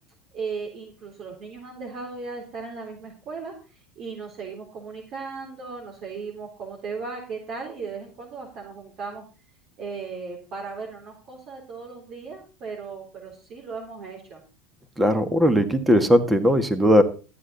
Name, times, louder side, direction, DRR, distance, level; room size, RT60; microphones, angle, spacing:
voice 1, 0.3-3.5 4.0-9.2 9.8-14.4, right 4 dB, 50° right, -1 dB, 3.7 m, -36 dB
voice 2, 15.0-17.0, equal, 10° right, 9 dB, 1.8 m, -18 dB
13.5 x 9.7 x 4.1 m, 0.35 s
hypercardioid pair, 90°, 0 cm